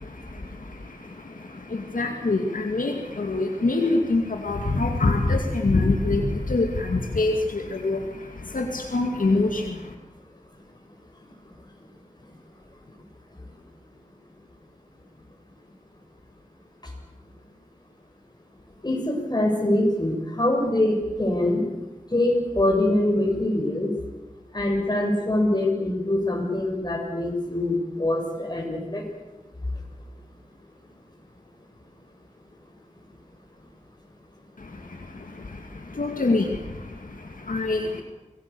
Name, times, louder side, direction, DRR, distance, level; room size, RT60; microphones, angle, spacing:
voice 1, 0.0-9.9 34.6-38.0, left 2 dB, 80° left, 3 dB, 2.3 m, -26 dB
voice 2, 18.8-21.6 22.1-23.9 24.5-29.0, left 1 dB, 30° left, 1 dB, 6.8 m, -24 dB
25.0 x 20.0 x 7.0 m, 1.1 s
wide cardioid pair, 65°, 14 cm